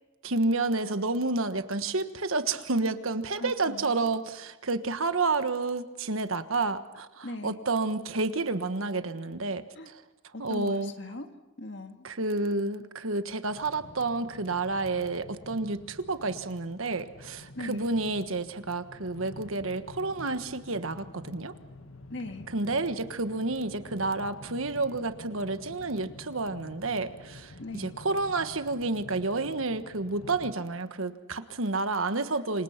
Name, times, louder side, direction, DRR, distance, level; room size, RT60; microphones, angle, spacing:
voice 1, 0.2-10.0 10.4-10.9 12.0-21.5 22.5-32.6, right 3 dB, 75° right, 10 dB, 1.4 m, -30 dB
voice 2, 3.4-3.9 7.2-7.6 9.8-9.9 10.3-11.3 11.6-12.1 17.6-17.9 22.1-22.5 27.6-27.9 32.3-32.4, left 2 dB, 55° left, 6 dB, 2.0 m, -39 dB
sound 1, 13.5-30.5, left 2 dB, 75° left, 1.5 m, -48 dB
28.0 x 25.5 x 5.9 m, 1.1 s
head